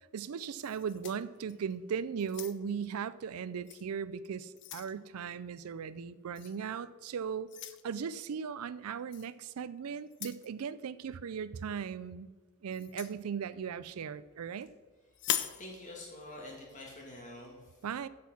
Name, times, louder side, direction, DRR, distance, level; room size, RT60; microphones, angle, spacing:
voice 1, 0.1-7.5 7.8-12.3 12.6-14.7 17.8-18.1, right 7 dB, 75° right, 16 dB, 0.4 m, -38 dB
sound 1, 0.6-1.8 2.2-2.8 3.6-3.8 4.2-5.0 6.4-6.6 7.5-7.8 9.1-9.3 10.1-10.5 12.7-13.2 15.1-15.6, left 11 dB, 55° left, 0.6 m, -39 dB
voice 2, 15.6-17.8, left 1 dB, 35° left, -2 dB, 2.7 m, -47 dB
8.3 x 7.7 x 6.0 m, 1.4 s
head